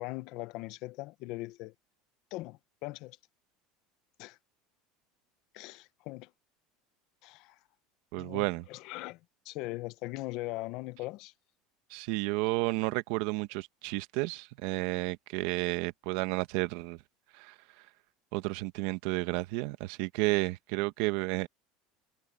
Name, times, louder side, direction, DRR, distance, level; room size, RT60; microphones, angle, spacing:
voice 1, 0.0-1.7 2.3-3.2 4.2-4.4 5.5-6.3 7.2-7.5 8.2-9.2 9.4-11.3, left 20 dB, 60° left, 0.9 m, -40 dB
voice 2, 8.1-8.6 11.9-17.0 17.4-17.5 18.3-21.5, right 21 dB, 70° right, 1.2 m, -31 dB
supercardioid pair, 135°, 0 cm